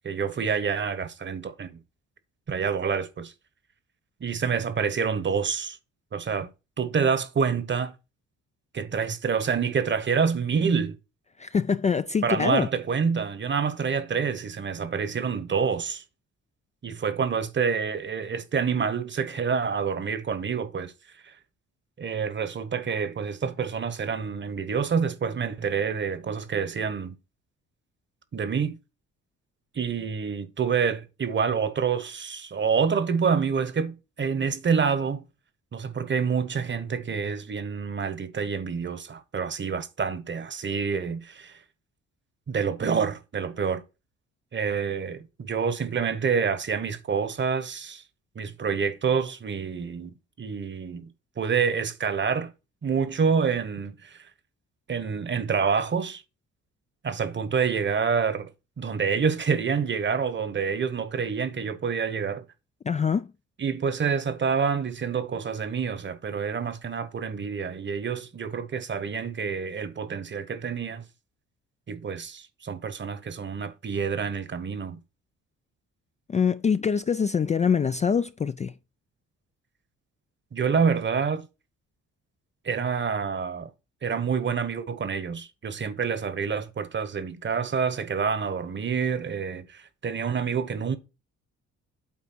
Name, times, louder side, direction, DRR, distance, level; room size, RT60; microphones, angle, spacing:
voice 1, 0.0-1.8 2.5-3.3 4.2-5.8 6.1-6.5 6.8-7.9 8.7-11.0 12.2-16.0 16.8-20.9 21.2-21.3 22.0-27.1 28.3-28.8 29.7-35.2 35.7-41.6 42.5-43.8 44.5-48.0 48.3-51.1 51.4-52.5 52.8-54.3 54.9-56.2 57.0-58.5 58.8-62.4 63.6-71.1 71.9-75.0 80.5-81.5 82.6-83.7 84.0-91.0, right 6 dB, 40° right, 1.1 m, -27 dB
voice 2, 11.4-12.7 62.8-63.3 76.3-78.7, left 6 dB, 25° left, 0.3 m, -24 dB
8.5 x 3.5 x 6.1 m
cardioid pair, 90°, 30 cm